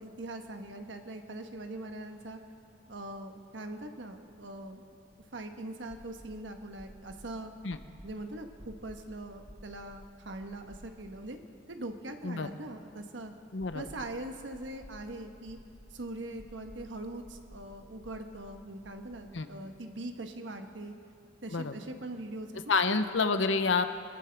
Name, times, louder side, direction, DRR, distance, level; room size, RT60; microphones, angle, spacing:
voice 1, 0.0-2.4 2.9-4.8 5.3-7.5 8.0-11.4 11.7-13.3 13.7-15.6 15.9-20.9 21.4-23.0, right 1 dB, 75° right, 5 dB, 1.2 m, -42 dB
sound 1, 2.1-2.2 2.4-2.5 4.1-5.3 5.9-6.4 6.8-7.3 7.7-8.2 8.6-9.0 9.5-10.0 10.4-11.2 11.5-11.6 13.6-14.2 14.5-15.0 15.5-15.9 16.4-16.8 17.2-17.7 18.0-18.5 18.8-19.2, equal, 5° right, 2.2 m, -52 dB
voice 2, 13.5-13.9 19.3-19.5 21.5-21.8 22.7-23.8, left 4 dB, 80° left, 9 dB, 0.8 m, -28 dB
24.0 x 14.5 x 3.5 m, 2.4 s
head